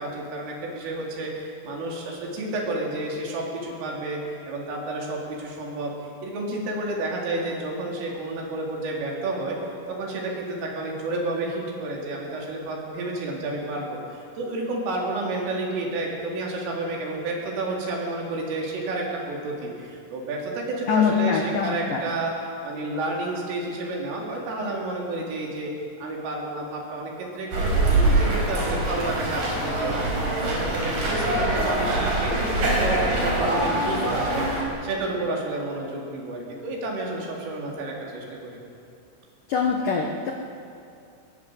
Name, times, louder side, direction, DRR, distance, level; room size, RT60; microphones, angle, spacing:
voice 1, 0.0-4.2 4.5-5.9 6.2-9.6 9.9-25.7 26.0-30.1 30.4-38.5, right 2 dB, 70° right, -2 dB, 6.3 m, -30 dB
voice 2, 20.9-22.0 39.5-40.3, left 6 dB, 70° left, 1 dB, 2.0 m, -23 dB
sound 1, 27.5-34.6, right 2 dB, 40° right, 6.4 m, -24 dB
21.5 x 21.0 x 8.2 m, 2.5 s
omnidirectional pair, 6.0 m